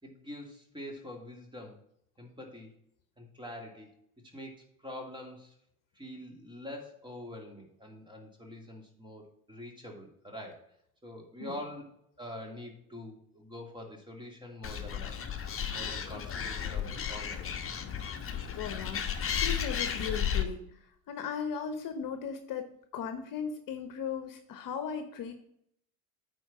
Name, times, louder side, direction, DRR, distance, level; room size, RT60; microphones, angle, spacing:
voice 1, 0.0-1.8 2.2-2.7 3.2-3.9 4.3-5.5 5.9-10.7 11.0-15.2 15.7-17.5, left 1 dB, 10° right, 2 dB, 2.7 m, -45 dB
Animal, 14.6-20.4, left 8 dB, 30° left, 1.2 m, -33 dB
voice 2, 18.5-19.1 19.3-25.4, left 7 dB, 50° left, 8 dB, 1.2 m, -37 dB
9.1 x 4.6 x 5.7 m, 0.71 s
hypercardioid pair, 65°, 43 cm